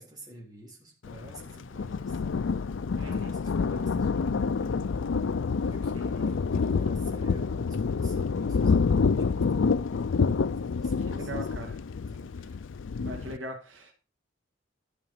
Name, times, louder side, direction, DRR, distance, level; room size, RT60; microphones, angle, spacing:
voice 1, 0.0-2.2 2.9-5.1 5.6-9.7 10.6-11.3 12.1-12.4, right 1 dB, 20° right, 3.7 m, -49 dB
Thunder, 1.0-13.4, left 5 dB, 75° left, 0.5 m, -28 dB
voice 2, 3.0-3.3 5.9-6.3 11.1-11.8 13.0-13.9, right 1 dB, 80° right, 2.6 m, -41 dB
12.0 x 5.9 x 5.6 m
head